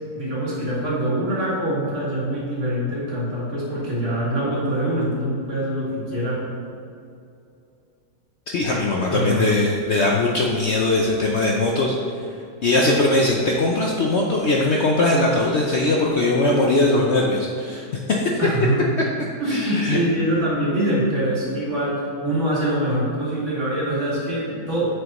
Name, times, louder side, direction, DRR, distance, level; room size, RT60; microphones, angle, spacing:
voice 1, 0.1-6.4 9.1-9.6 18.4-18.8 19.4-25.0, right 1 dB, 40° right, -6 dB, 2.3 m, -24 dB
voice 2, 8.5-11.9 12.6-17.9 19.5-20.0 20.3-20.4, left 2 dB, 65° left, -1 dB, 0.6 m, -20 dB
8.8 x 6.7 x 3.0 m, 2.6 s
omnidirectional pair, 1.9 m